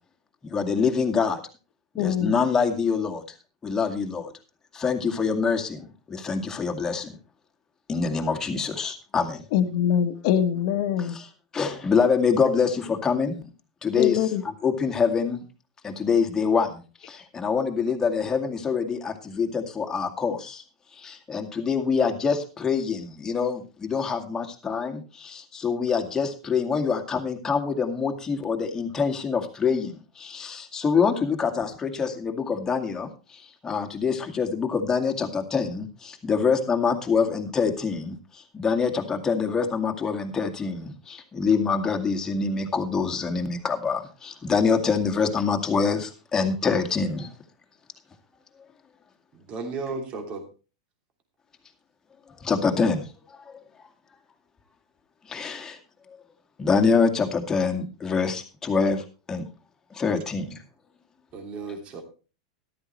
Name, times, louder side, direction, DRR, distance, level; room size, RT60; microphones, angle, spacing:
voice 1, 0.5-1.4 2.0-3.2 3.6-4.2 4.8-5.7 6.2-7.0 7.9-9.4 11.5-13.4 13.8-14.2 14.6-15.4 15.8-16.7 17.4-20.4 21.3-25.0 25.6-29.9 30.4-30.5 30.7-33.1 33.6-35.9 36.2-38.1 38.5-40.9 41.4-44.0 44.4-47.2 52.5-53.0 55.3-55.7 56.6-59.0 59.3-59.4 60.0-60.4, left 5 dB, 15° left, 4 dB, 2.1 m, -24 dB
voice 2, 2.0-2.4 9.5-11.2 13.9-14.4, left 9 dB, 55° left, 8 dB, 1.5 m, -23 dB
voice 3, 49.3-50.4 61.3-62.0, right 4 dB, 35° right, 4 dB, 3.0 m, -34 dB
13.5 x 12.0 x 3.2 m, 0.34 s
hypercardioid pair, 130°, 3 cm